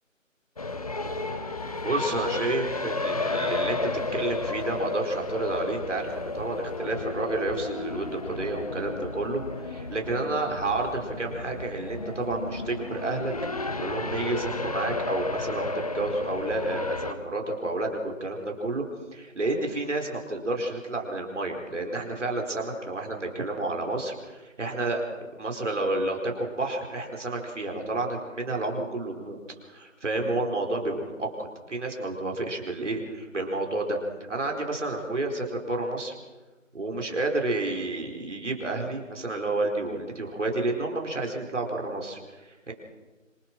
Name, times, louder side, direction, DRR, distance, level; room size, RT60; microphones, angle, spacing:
sound 1, 0.6-17.1, left 3 dB, 30° left, 1.0 m, -32 dB
voice 1, 1.8-18.8 19.1-25.0 25.3-29.4 29.7-34.0 34.3-36.1 36.7-42.7, right 2 dB, 65° right, 1 dB, 4.7 m, -30 dB
26.5 x 19.0 x 6.2 m, 1.2 s
figure-of-eight pair, 165°, 39 cm